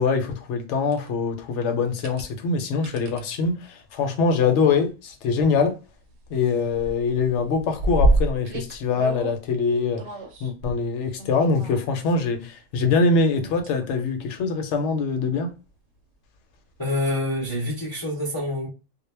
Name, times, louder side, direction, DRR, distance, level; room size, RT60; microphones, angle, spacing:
voice 1, 0.0-5.8 6.3-10.0 10.4-15.5, left 4 dB, 70° left, 0.8 m, -23 dB
sound 1, 0.9-1.1 1.8-2.2 2.8-3.2 4.4-4.7 5.1-5.2 5.5-6.4 6.7-9.4 10.0-10.5 11.2-12.1 13.3-13.9 14.4-14.5 16.8-16.9, right 1 dB, 65° right, 0.8 m, -27 dB
voice 2, 16.8-18.7, left 1 dB, 30° left, 0.4 m, -26 dB
2.2 x 2.1 x 3.1 m
omnidirectional pair, 1.4 m